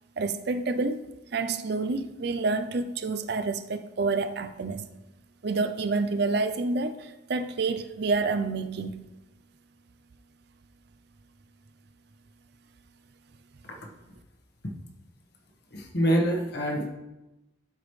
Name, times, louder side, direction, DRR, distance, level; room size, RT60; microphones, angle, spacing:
voice 1, 0.2-1.0 1.3-4.9 5.4-9.1, right 3 dB, 55° right, 0.5 m, -28 dB
voice 2, 15.7-16.9, equal, 55° left, 1.3 m, -25 dB
12.0 x 5.1 x 3.2 m
head